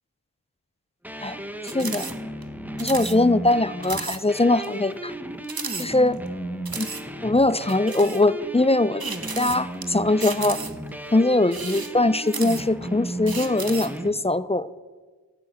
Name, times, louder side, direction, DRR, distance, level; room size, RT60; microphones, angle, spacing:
sound 1, 1.0-14.1, right 1 dB, 5° right, 1.0 m, -35 dB
sound 2, 1.6-2.1 2.4-2.5 2.8-3.2 3.5-3.6 3.8-4.2 4.6-4.7 5.4-6.3 6.7-7.0 7.7-8.2 9.0-9.8 10.2-10.9 11.4-12.8 13.3-14.0, right 5 dB, 55° right, 1.0 m, -34 dB
voice 1, 1.7-2.1 2.8-5.1 5.8-6.2 6.8-6.9 7.2-9.0 9.4-10.6 11.1-14.7, left 2 dB, 15° left, 17 dB, 0.4 m, -21 dB
12.0 x 8.8 x 7.9 m, 1.4 s
wide cardioid pair, 45°, 43 cm